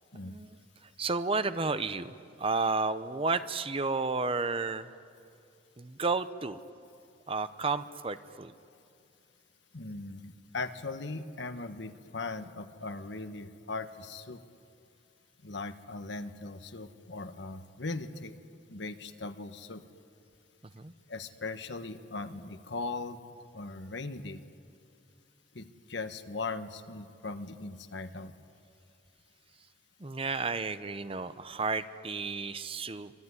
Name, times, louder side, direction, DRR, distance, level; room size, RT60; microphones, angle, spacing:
voice 1, 1.0-4.9 5.8-6.6 7.3-8.5 20.8-20.9 30.0-33.1, right 3 dB, 30° right, 12 dB, 0.7 m, -32 dB
voice 2, 9.7-14.4 15.4-18.3 18.7-19.8 21.1-23.2 23.5-24.4 25.5-28.3, left 3 dB, 70° left, 9 dB, 1.3 m, -39 dB
25.5 x 22.5 x 9.8 m, 2.5 s
head